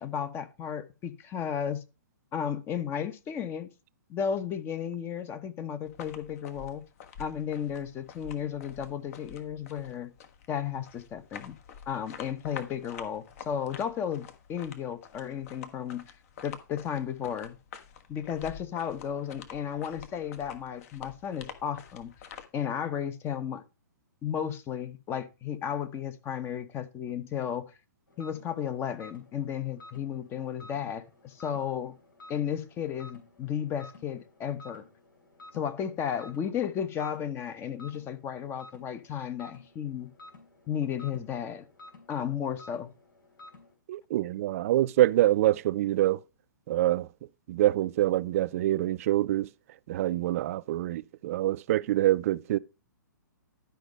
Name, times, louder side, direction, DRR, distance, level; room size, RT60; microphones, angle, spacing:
voice 1, 0.0-1.8 2.3-3.7 4.1-6.8 7.2-10.1 10.5-11.6 11.9-16.1 16.4-17.6 18.1-22.1 22.5-23.6 24.2-27.7 28.2-31.9 32.3-34.8 35.5-40.1 40.7-41.7 42.1-42.9, left 8 dB, 20° left, 0.9 m, -34 dB
sound 1, 5.8-22.4, left 7 dB, 45° left, 1.3 m, -48 dB
sound 2, 28.1-43.7, left 2 dB, 80° left, 3.4 m, -53 dB
voice 2, 43.9-46.2 46.7-47.1 47.5-49.5 49.9-52.6, right 14 dB, 45° right, 0.4 m, -25 dB
11.5 x 5.3 x 5.2 m
hypercardioid pair, 125°, 11 cm